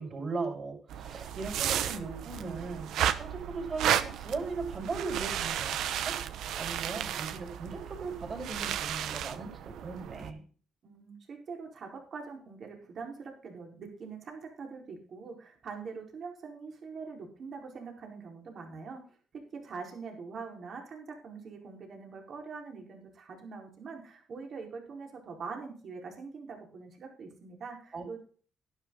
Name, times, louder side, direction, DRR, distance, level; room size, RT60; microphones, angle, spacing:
voice 1, 0.0-2.9 3.1-6.1 6.5-10.4 27.9-28.0, right 4 dB, 40° right, 1 dB, 6.6 m, -38 dB
sound 1, 0.9-10.3, right 10 dB, 80° right, 1.1 m, -33 dB
voice 2, 10.8-28.2, right 5 dB, 55° right, 2 dB, 4.5 m, -43 dB
12.0 x 11.5 x 3.9 m, 0.42 s
cardioid pair, 90°, 0 cm